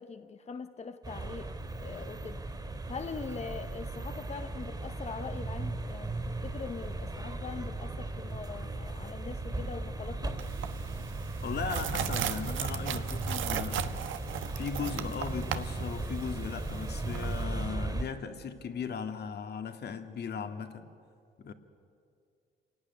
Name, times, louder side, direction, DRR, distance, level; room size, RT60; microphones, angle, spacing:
voice 1, 0.0-1.5 1.8-2.4 2.9-10.4, left 5 dB, 35° left, 1.0 m, -42 dB
sound 1, 1.0-18.0, right 2 dB, 20° right, 2.7 m, -37 dB
sound 2, 10.4-17.4, right 10 dB, 80° right, 1.2 m, -37 dB
voice 2, 11.4-14.0 14.6-20.9 21.4-21.5, left 6 dB, 55° left, 2.0 m, -37 dB
27.5 x 18.0 x 9.7 m
cardioid pair, 90°, 20 cm